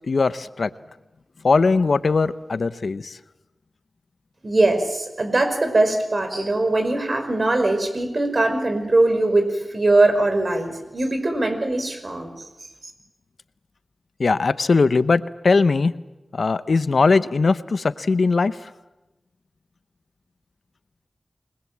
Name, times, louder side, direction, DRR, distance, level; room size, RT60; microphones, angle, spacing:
voice 1, 0.1-0.7 1.4-3.2 14.2-16.0 16.3-18.6, left 4 dB, 75° left, 14 dB, 0.8 m, -20 dB
voice 2, 4.4-12.4, right 2 dB, 55° right, 7 dB, 5.1 m, -21 dB
28.0 x 20.5 x 7.5 m, 1.0 s
cardioid pair, 45°, 0 cm